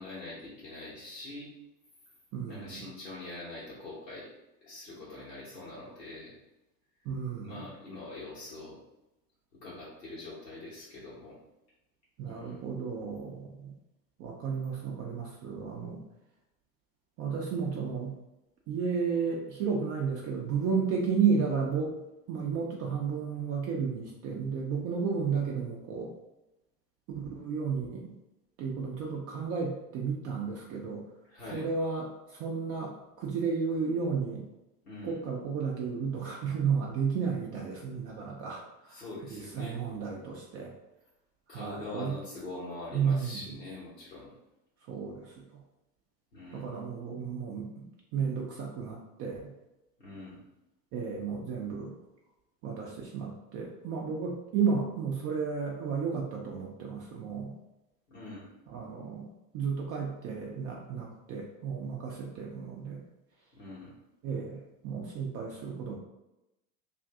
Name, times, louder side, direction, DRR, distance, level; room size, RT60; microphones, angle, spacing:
voice 1, 0.0-1.5 2.5-4.3 4.6-6.3 7.4-8.8 9.6-11.4 12.2-12.6 31.3-31.7 34.8-35.1 38.9-39.8 41.5-44.3 46.3-46.7 50.0-50.4 58.1-58.5 63.5-63.9, left 2 dB, 85° left, -8 dB, 1.1 m, -43 dB
voice 2, 2.3-2.9 7.0-7.6 12.2-13.7 14.2-16.0 17.2-18.1 18.7-26.1 27.1-28.1 28.6-31.0 31.5-32.9 33.2-34.5 35.0-40.7 41.5-42.1 42.9-43.4 44.9-45.6 46.5-47.7 48.1-49.4 50.9-51.9 52.6-57.5 58.7-59.3 59.5-63.0 64.2-66.0, right 6 dB, 35° right, -1 dB, 0.4 m, -33 dB
2.5 x 2.5 x 3.5 m, 0.94 s
hypercardioid pair, 90°, 47 cm